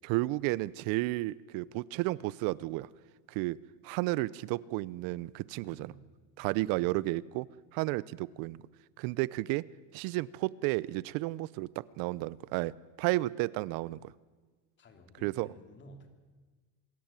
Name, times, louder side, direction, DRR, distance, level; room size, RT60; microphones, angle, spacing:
voice 1, 0.0-2.9 3.3-3.6 3.8-5.9 6.4-7.5 7.7-8.6 9.0-9.6 9.9-12.7 13.0-14.0 15.2-15.5, right 20 dB, 65° right, 21 dB, 0.7 m, -32 dB
voice 2, 5.6-6.2 6.4-6.8 14.8-16.1, equal, 30° left, 6 dB, 3.1 m, -54 dB
25.0 x 14.0 x 8.9 m, 1.4 s
cardioid pair, 145°, 38 cm